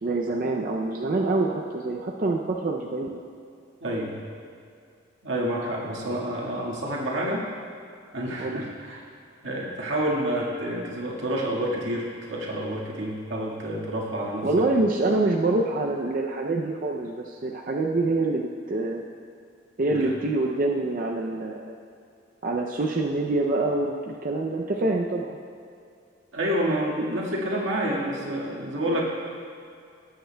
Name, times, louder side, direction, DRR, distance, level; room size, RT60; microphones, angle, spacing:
voice 1, 0.0-3.2 5.8-6.2 7.2-7.4 8.3-8.6 14.4-19.0 19.8-21.7 22.4-25.4 28.2-28.4 28.8-29.0, right 2 dB, 45° right, -1 dB, 0.5 m, -26 dB
voice 2, 3.8-4.2 5.2-7.5 8.1-9.0 9.4-14.5 19.9-20.1 26.3-29.0, right 1 dB, 80° right, -3 dB, 1.7 m, -28 dB
18.0 x 7.9 x 2.3 m, 2.4 s
head